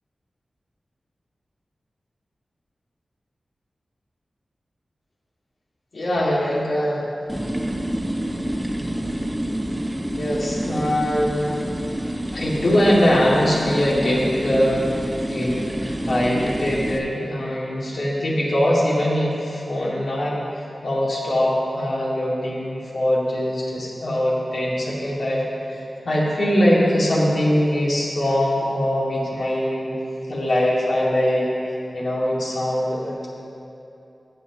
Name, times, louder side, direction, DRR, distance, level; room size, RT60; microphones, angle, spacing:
voice 1, 5.9-7.1 10.1-11.7 12.3-29.9 30.3-31.5 31.9-33.3, equal, 70° left, -6 dB, 2.4 m, -22 dB
sound 1, 7.3-17.0, right 1 dB, 15° right, 0.7 m, -28 dB
14.5 x 8.4 x 3.1 m, 2.9 s
wide cardioid pair, 105°, 0 cm